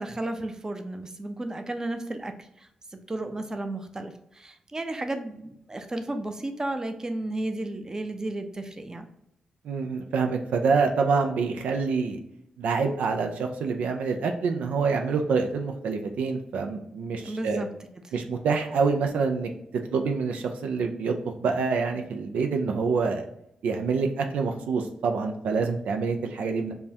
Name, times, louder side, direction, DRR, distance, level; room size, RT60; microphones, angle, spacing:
voice 1, 0.0-2.7 3.1-9.0 17.2-17.7, right 2 dB, 25° right, 6 dB, 0.6 m, -33 dB
voice 2, 9.6-12.2 12.6-17.6 18.1-19.5 19.9-23.2 23.6-26.7, right 4 dB, 85° right, 4 dB, 0.4 m, -26 dB
5.2 x 2.2 x 2.8 m, 0.78 s
cardioid pair, 55°, 2 cm